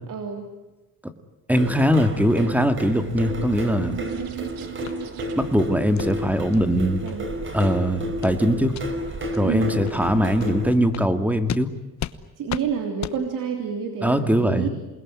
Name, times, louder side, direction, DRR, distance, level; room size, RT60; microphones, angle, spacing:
voice 1, 0.1-0.5 7.0-7.3 9.4-9.8 12.4-14.7, right 7 dB, 65° right, 4 dB, 3.4 m, -28 dB
voice 2, 1.5-3.9 5.4-7.0 7.5-8.7 9.3-11.7 14.0-14.7, equal, 5° right, 9 dB, 2.0 m, -21 dB
sound 1, 1.5-10.7, equal, 35° right, 4.4 m, -31 dB
sound 2, 2.8-5.7, right 14 dB, 80° right, 2.6 m, -37 dB
sound 3, 4.9-5.0 5.4-5.5 6.0-6.1 6.5-6.6 7.1-7.2 7.6-7.8 8.2-8.4 8.7-8.9 9.3-9.4 9.9-10.0 10.4-10.5 10.9-11.1 11.5-11.6 12.0-12.2 12.5-12.7 13.0-13.2, left 10 dB, 50° left, 1.1 m, -33 dB
28.0 x 21.0 x 9.9 m, 1.1 s
cardioid pair, 125°, 35 cm